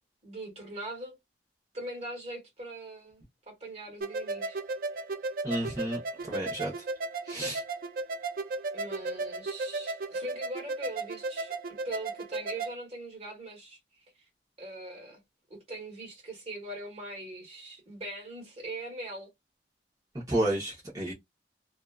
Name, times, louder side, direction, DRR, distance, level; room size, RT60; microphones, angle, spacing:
voice 1, 0.2-1.2 1.7-4.6 8.7-11.5 11.8-13.8 14.6-15.2 15.5-19.3, right 1 dB, 35° right, 1.3 m, -41 dB
sound 1, 4.0-12.7, right 3 dB, 55° right, 0.4 m, -35 dB
voice 2, 5.4-6.9 7.2-7.6 20.1-21.1, right 1 dB, 20° right, 0.8 m, -31 dB
2.6 x 2.3 x 2.3 m
head